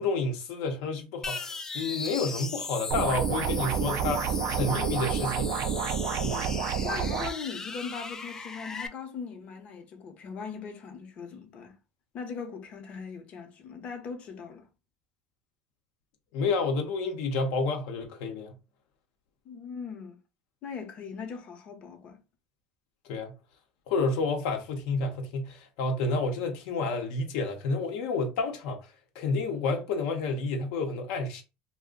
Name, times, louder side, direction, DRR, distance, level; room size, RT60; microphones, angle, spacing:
voice 1, 0.0-5.5 6.2-6.6 16.3-18.6 23.1-23.4 23.9-28.8 29.1-31.4, left 3 dB, 75° left, 0.7 m, -30 dB
sound 1, 1.2-8.9, left 4 dB, 20° left, 0.4 m, -38 dB
sound 2, 2.9-7.3, right 7 dB, 60° right, 0.4 m, -29 dB
voice 2, 6.8-11.8 12.1-14.7 19.4-20.2 20.6-22.2, left 5 dB, 45° left, 0.8 m, -39 dB
2.4 x 2.1 x 3.7 m
supercardioid pair, 125°, 3 cm